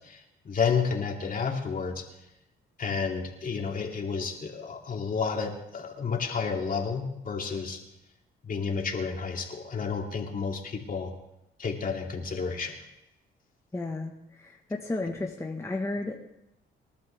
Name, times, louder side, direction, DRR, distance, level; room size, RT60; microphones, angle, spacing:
voice 1, 0.0-2.1 2.8-7.8 8.4-11.1 11.6-12.7, left 5 dB, 45° left, 1 dB, 2.9 m, -31 dB
voice 2, 13.7-16.2, left 2 dB, 15° left, 1 dB, 1.4 m, -33 dB
27.0 x 12.0 x 3.5 m, 0.87 s
cardioid pair, 90°, 20 cm